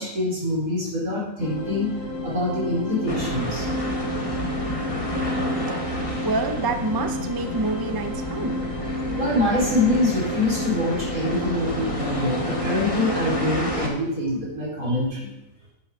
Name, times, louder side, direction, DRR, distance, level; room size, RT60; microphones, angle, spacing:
voice 1, 0.0-1.9 2.2-3.7 9.2-15.3, left 1 dB, 85° right, -6 dB, 5.0 m, -25 dB
sound 1, 1.4-13.7, equal, 65° left, 2.4 m, -32 dB
sound 2, 3.1-13.9, equal, 25° left, 2.3 m, -30 dB
voice 2, 6.2-8.6, right 3 dB, 20° right, 6 dB, 0.7 m, -27 dB
10.5 x 9.2 x 5.2 m, 0.89 s
omnidirectional pair, 1.5 m